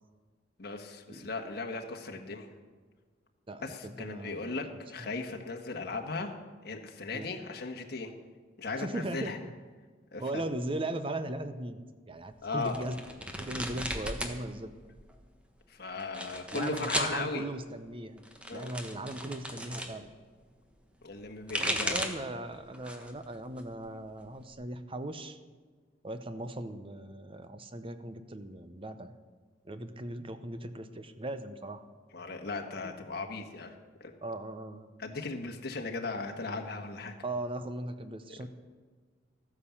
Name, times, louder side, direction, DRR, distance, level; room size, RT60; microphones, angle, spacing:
voice 1, 0.6-2.5 3.6-6.3 6.6-8.1 8.6-9.4 10.1-10.4 12.4-12.8 15.7-17.4 18.5-18.7 21.0-22.0 32.1-34.1 35.0-37.1 38.4-38.5, left 3 dB, 60° left, 3 dB, 1.5 m, -37 dB
voice 2, 3.5-4.6 5.0-5.2 7.1-7.3 8.8-9.3 10.2-11.8 12.1-13.0 13.4-14.7 16.5-18.2 18.5-20.1 21.6-25.4 26.0-29.1 29.6-31.8 32.8-32.9 34.2-34.9 37.2-38.5, right 1 dB, 30° right, 10 dB, 0.8 m, -38 dB
sound 1, 12.6-14.4 14.7-15.3 16.0-17.2 18.2-19.9 21.2-22.3 22.7-23.2 23.6-24.5, equal, 5° right, 1.2 m, -36 dB
13.5 x 9.7 x 7.3 m, 1.5 s
head